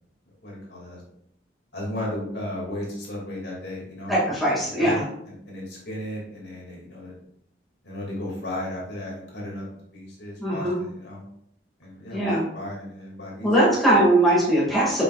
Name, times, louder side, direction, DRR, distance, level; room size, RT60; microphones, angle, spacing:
voice 1, 0.4-1.0 1.7-4.1 4.8-7.1 7.8-9.6 9.9-11.2 11.8-13.5 13.9-14.0, left 1 dB, 65° left, -4 dB, 2.4 m, -35 dB
voice 2, 4.1-5.0 10.4-10.8 12.1-12.4 13.4-15.0, right 1 dB, ahead, -7 dB, 2.1 m, -20 dB
6.9 x 5.6 x 2.5 m, 0.72 s
head